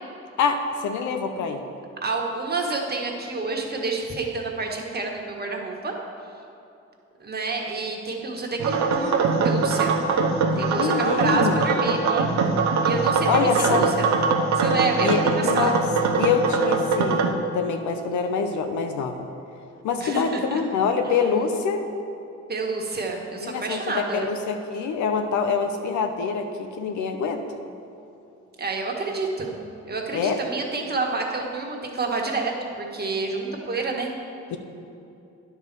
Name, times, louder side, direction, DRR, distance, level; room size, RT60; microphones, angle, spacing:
voice 1, 0.4-1.6 10.8-11.6 13.3-13.9 15.0-19.3 19.8-21.8 23.4-27.4 30.1-30.4 34.5-34.6, left 5 dB, 85° left, 6 dB, 0.8 m, -25 dB
voice 2, 2.0-5.9 7.2-9.9 10.5-12.3 12.8-14.1 14.5-15.7 20.0-20.6 22.5-24.3 28.6-29.5 29.8-34.1, right 3 dB, 35° right, 0 dB, 1.5 m, -28 dB
sound 1, 8.6-17.3, right 4 dB, 70° right, 0.9 m, -22 dB
9.7 x 4.6 x 6.6 m, 2.7 s
cardioid pair, 75°, 29 cm